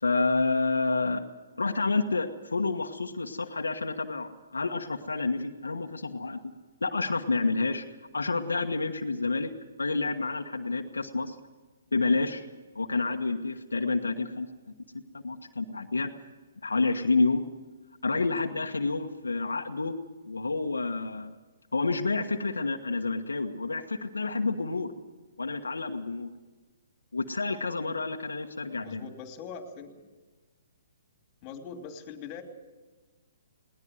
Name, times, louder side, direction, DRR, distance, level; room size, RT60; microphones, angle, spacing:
voice 1, 0.0-1.2 1.6-6.4 6.8-7.9 8.1-9.5 9.8-11.3 11.9-12.4 12.7-14.5 15.2-16.1 16.6-17.4 18.0-19.9 20.2-21.3 21.7-24.9 25.4-26.3 27.1-29.1, left 3 dB, 85° left, 4 dB, 1.3 m, -29 dB
voice 2, 28.8-30.1 31.4-32.4, left 6 dB, 30° left, 5 dB, 2.8 m, -42 dB
20.5 x 18.5 x 7.9 m, 1.3 s
hypercardioid pair, 135°, 0 cm